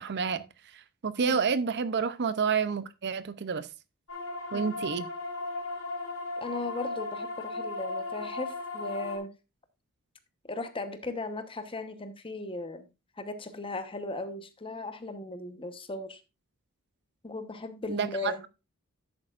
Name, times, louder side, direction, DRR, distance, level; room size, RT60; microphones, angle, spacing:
voice 1, 0.0-3.7 4.5-5.1 17.9-18.3, right 6 dB, 50° right, 0.6 m, -29 dB
sound 1, 4.1-9.2, left 3 dB, 75° left, 3.4 m, -36 dB
voice 2, 6.4-9.3 10.5-12.9 13.2-16.2 17.2-18.4, left 2 dB, 25° left, 1.0 m, -37 dB
10.5 x 8.5 x 2.5 m
head